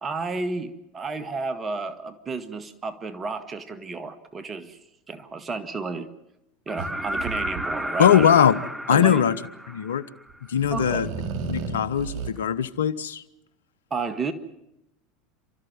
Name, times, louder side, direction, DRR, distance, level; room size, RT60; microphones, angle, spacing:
voice 1, 0.0-4.8 5.1-6.1 6.7-8.3 8.9-9.2 10.7-11.1 13.9-14.3, right 4 dB, 25° right, 1.8 m, -32 dB
sound 1, 6.7-10.5 12.4-12.5, equal, 5° right, 0.9 m, -32 dB
sound 2, 6.8-8.1 10.3-12.3, right 5 dB, 50° right, 3.2 m, -33 dB
voice 2, 8.0-8.6 8.9-9.3 9.7-10.0 10.5-11.1 11.5-13.2, left 9 dB, 85° left, 1.0 m, -20 dB
29.0 x 13.5 x 9.7 m
hypercardioid pair, 90°, 0 cm